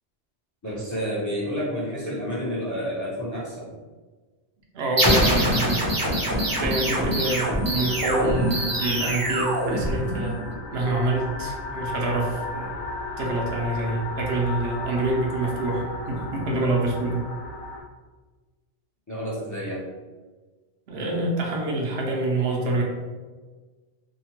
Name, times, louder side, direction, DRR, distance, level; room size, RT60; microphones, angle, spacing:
voice 1, 0.6-3.7 19.1-19.8, equal, 20° left, -7 dB, 0.6 m, -30 dB
voice 2, 4.7-5.9 6.6-10.4 10.7-12.7 13.2-17.3 20.9-22.8, right 2 dB, 75° right, -1 dB, 0.8 m, -26 dB
sound 1, 5.0-10.4, right 1 dB, 25° right, 0.5 m, -24 dB
sound 2, 5.3-17.8, left 2 dB, 90° left, 0.9 m, -35 dB
2.8 x 2.1 x 2.8 m, 1.3 s
omnidirectional pair, 1.1 m